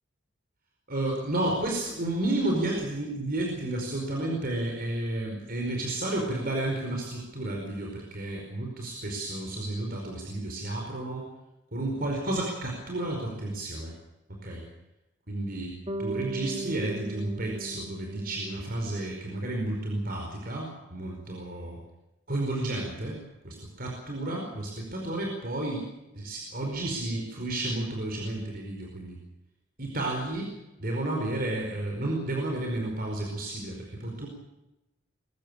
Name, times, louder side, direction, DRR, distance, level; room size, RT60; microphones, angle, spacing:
voice 1, 0.9-11.3 11.7-13.9 14.3-14.7 15.3-21.8 22.3-23.2 23.4-25.9 26.1-29.2 29.8-30.5 30.8-34.3, right 1 dB, 50° right, 1 dB, 4.9 m, -32 dB
Bass guitar, 15.9-20.0, right 3 dB, 30° right, 2.2 m, -38 dB
22.5 x 15.5 x 8.8 m, 0.97 s
head